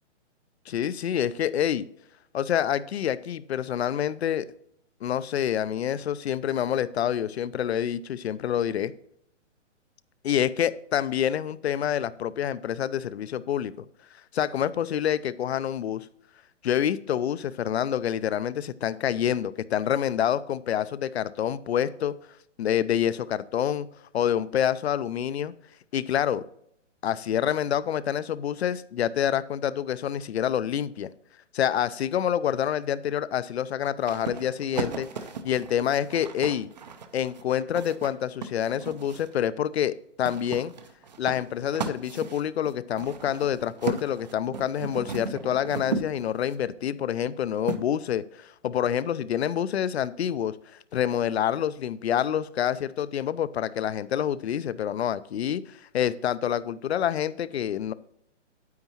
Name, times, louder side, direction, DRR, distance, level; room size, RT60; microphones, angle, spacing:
voice 1, 0.7-1.9 2.3-4.5 5.0-8.9 10.2-13.7 14.3-16.1 16.6-22.1 22.6-23.9 24.1-25.5 25.9-26.4 27.0-31.1 31.5-35.1 35.4-36.7 37.1-40.7 41.2-50.6 50.9-57.9, left 10 dB, 60° left, 17 dB, 0.5 m, -27 dB
sound 1, 34.0-39.4 40.2-46.6 47.7-47.8, right 5 dB, 35° right, 0.5 m, -36 dB
9.4 x 8.0 x 2.9 m, 0.72 s
hypercardioid pair, 165°, 36 cm